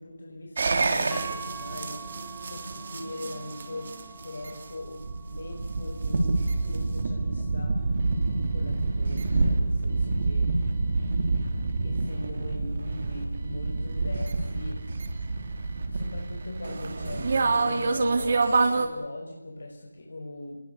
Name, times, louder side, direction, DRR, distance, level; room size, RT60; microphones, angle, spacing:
voice 1, 0.0-7.8 8.5-10.5 11.8-14.8 15.9-20.6, left 1 dB, 65° left, 0 dB, 6.3 m, -40 dB
sound 1, 0.6-18.9, right 3 dB, 45° right, 3.5 m, -27 dB
sound 2, 1.1-9.3, right 6 dB, 5° left, 5.4 m, -46 dB
28.5 x 21.5 x 6.9 m, 0.87 s
figure-of-eight pair, 165°, 0 cm